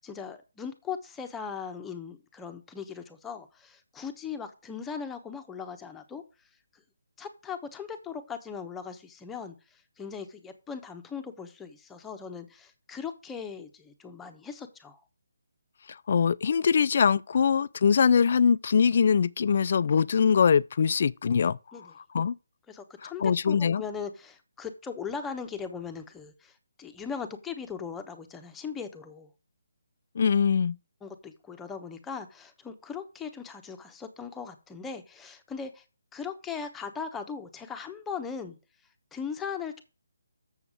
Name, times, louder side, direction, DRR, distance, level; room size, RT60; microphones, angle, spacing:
voice 1, 0.0-6.2 7.2-9.5 10.0-15.0 21.7-21.9 22.7-26.5 26.8-29.3 31.0-35.8 36.1-38.6 39.1-39.8, left 6 dB, 10° left, 1.0 m, -39 dB
voice 2, 16.1-21.6 22.1-22.4 23.0-23.8 30.2-30.8, left 6 dB, 50° left, 0.4 m, -23 dB
7.2 x 7.0 x 5.0 m
hypercardioid pair, 160°, 0 cm